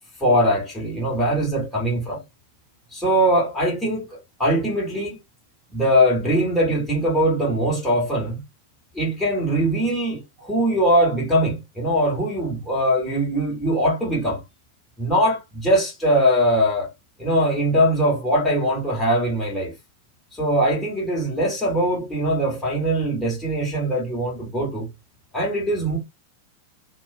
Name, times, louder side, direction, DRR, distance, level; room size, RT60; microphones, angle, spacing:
voice 1, 0.2-2.2 2.9-4.1 4.4-5.2 5.7-8.4 8.9-14.4 15.0-16.9 17.2-19.7 20.3-24.9 25.3-26.0, equal, 5° left, 1.1 m, -21 dB
2.3 x 2.2 x 2.4 m
figure-of-eight pair, 90°, 0 cm